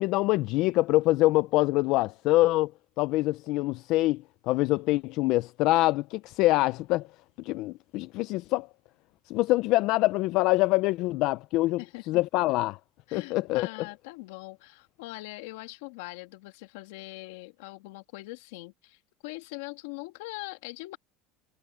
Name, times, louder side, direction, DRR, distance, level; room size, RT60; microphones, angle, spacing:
voice 1, 0.0-2.7 3.0-7.1 7.4-8.7 9.3-11.8 12.1-12.8 13.1-13.7, left 19 dB, 60° left, 0.4 m, -25 dB
voice 2, 11.8-12.2 13.1-21.0, left 21 dB, 90° left, 2.4 m, -42 dB
cardioid pair, 145°, 0 cm